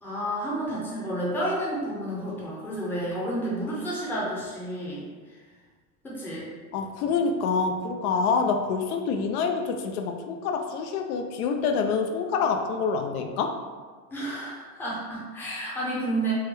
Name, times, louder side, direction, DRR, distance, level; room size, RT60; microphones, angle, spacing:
voice 1, 0.0-5.0 6.0-6.5 14.1-16.3, right 1 dB, 5° left, -7 dB, 0.5 m, -30 dB
voice 2, 6.7-13.5, left 5 dB, 75° left, 4 dB, 0.5 m, -26 dB
3.5 x 2.1 x 3.3 m, 1.5 s
supercardioid pair, 135°, 45 cm